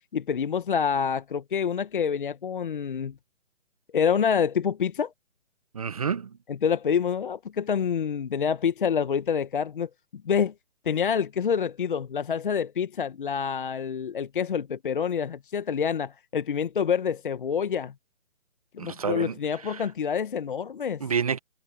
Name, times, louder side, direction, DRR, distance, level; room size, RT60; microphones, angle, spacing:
voice 1, 0.1-3.1 3.9-5.1 6.5-10.5 10.8-17.9 18.7-21.0, left 7 dB, 45° left, 1.0 m, -27 dB
voice 2, 5.7-6.3 18.8-19.8 21.0-21.4, right 6 dB, 30° right, 0.8 m, -29 dB
hypercardioid pair, 165°, 38 cm